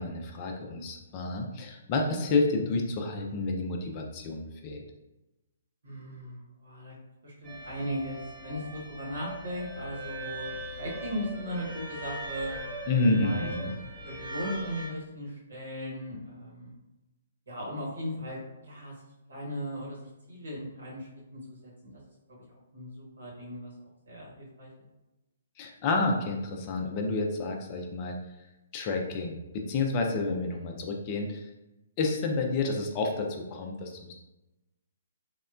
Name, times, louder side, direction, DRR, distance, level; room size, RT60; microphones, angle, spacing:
voice 1, 0.0-4.8 12.9-13.7 25.6-28.2 28.7-31.5 32.0-34.1, left 3 dB, 30° left, 2 dB, 0.4 m, -29 dB
voice 2, 5.8-7.0 7.2-12.5 13.1-13.5 14.0-16.7 17.5-19.0 19.3-22.4 22.7-23.7 24.1-24.9, equal, 70° right, -4 dB, 1.1 m, -38 dB
sound 1, 7.4-14.9, right 1 dB, 5° right, 0.7 m, -40 dB
3.5 x 2.1 x 2.4 m, 1.0 s
figure-of-eight pair, 125°, 0 cm